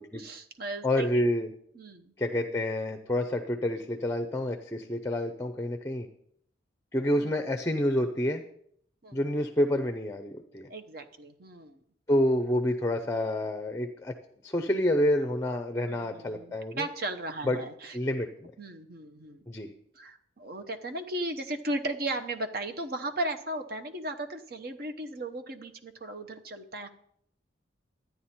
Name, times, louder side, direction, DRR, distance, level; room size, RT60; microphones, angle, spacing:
voice 1, 0.1-1.3 1.7-2.1 7.1-7.3 9.0-9.2 10.7-11.8 15.8-18.0 18.6-19.4 19.9-26.9, right 1 dB, 55° right, 6 dB, 0.9 m, -36 dB
voice 2, 0.8-1.5 2.2-6.1 6.9-8.4 9.1-10.7 12.1-14.1 14.4-16.9 17.4-17.6 17.9-18.5 19.5-19.7, left 1 dB, 15° left, 8 dB, 0.6 m, -28 dB
12.5 x 9.4 x 4.3 m, 0.68 s
head